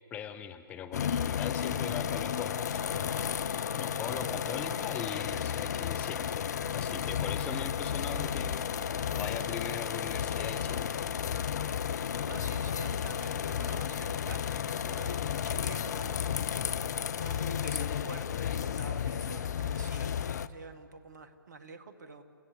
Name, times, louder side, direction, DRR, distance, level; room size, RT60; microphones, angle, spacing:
voice 1, 0.1-3.3 3.7-6.5 6.7-8.9 9.1-10.9, left 8 dB, 10° left, 10 dB, 0.6 m, -40 dB
sound 1, 0.9-20.5, left 8 dB, 50° left, 0.7 m, -33 dB
sound 2, 3.1-9.2, right 2 dB, 80° left, 3.5 m, -49 dB
voice 2, 12.3-16.3 17.1-20.1 20.5-22.2, right 4 dB, 50° right, 9 dB, 1.9 m, -48 dB
30.0 x 16.0 x 8.3 m, 2.4 s
figure-of-eight pair, 130°, 12 cm